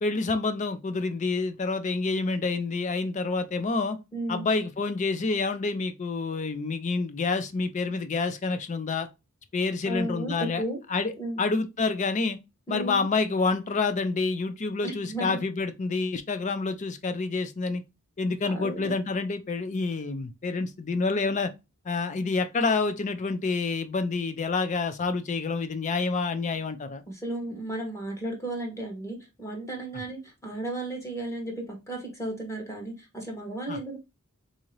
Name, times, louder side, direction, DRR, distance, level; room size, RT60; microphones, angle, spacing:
voice 1, 0.0-4.0 4.3-9.1 9.5-10.6 10.9-11.1 11.4-12.4 12.7-17.8 18.2-21.5 21.9-27.0 33.7-33.8, left 4 dB, 35° left, 0.4 m, -28 dB
voice 2, 4.1-4.4 9.8-10.8 11.2-11.4 12.7-13.1 14.8-15.4 18.4-18.9 27.1-34.0, right 1 dB, 15° left, 1.0 m, -34 dB
3.6 x 2.7 x 3.0 m
head